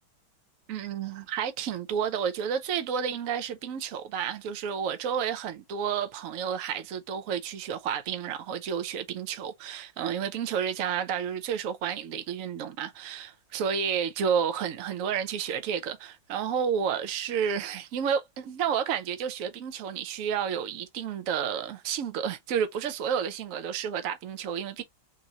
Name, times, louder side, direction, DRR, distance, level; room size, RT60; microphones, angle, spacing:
voice 1, 0.7-24.8, right 7 dB, 65° right, 0.8 m, -31 dB
3.7 x 2.7 x 3.0 m
omnidirectional pair, 2.2 m